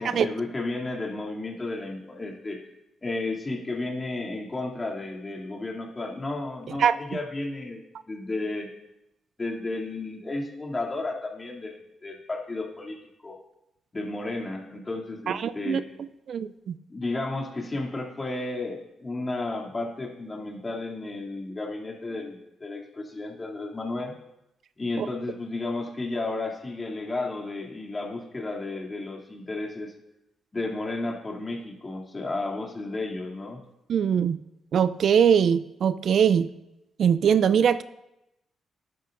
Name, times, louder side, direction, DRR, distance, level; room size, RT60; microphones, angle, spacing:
voice 1, 0.0-2.6 3.0-8.7 9.4-13.0 13.2-13.4 13.9-15.8 16.9-24.1 24.8-29.9 30.5-33.6, left 2 dB, 30° left, 0 dB, 2.7 m, -33 dB
voice 2, 15.3-15.8 16.3-16.7 25.0-25.1 33.9-34.4 34.7-36.5 37.0-37.8, right 8 dB, 65° right, 15 dB, 0.4 m, -22 dB
12.0 x 11.0 x 2.6 m, 0.88 s
hypercardioid pair, 45°, 0 cm